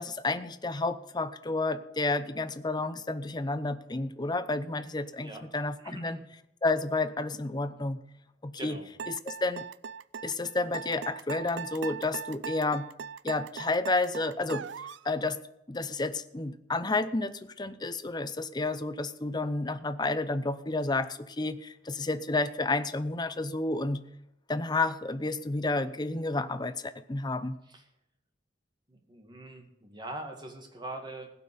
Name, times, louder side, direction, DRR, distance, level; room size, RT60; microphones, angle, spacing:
voice 1, 0.0-6.2 6.6-8.0 8.4-8.8 9.3-9.6 10.2-12.9 13.2-14.6 15.0-15.4 15.7-24.0 24.5-27.6, left 2 dB, 25° left, 12 dB, 0.7 m, -31 dB
voice 2, 5.8-6.2 8.6-8.9 27.7-27.8 28.9-31.3, right 2 dB, 25° right, 4 dB, 2.1 m, -42 dB
sound 1, 9.0-15.1, right 6 dB, 75° right, 0.4 m, -39 dB
16.0 x 6.0 x 9.5 m, 0.82 s
head